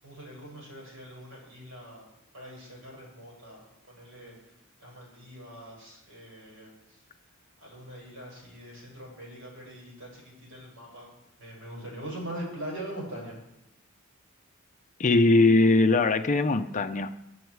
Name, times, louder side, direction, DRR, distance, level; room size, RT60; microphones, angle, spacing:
voice 1, 0.0-2.0 2.3-3.6 3.9-4.4 4.8-6.7 7.6-10.2 10.5-11.1 11.4-13.4, right 1 dB, 65° right, -3 dB, 6.7 m, -42 dB
voice 2, 15.0-17.1, left 2 dB, 35° left, 9 dB, 0.6 m, -21 dB
23.0 x 8.0 x 4.8 m, 0.86 s
head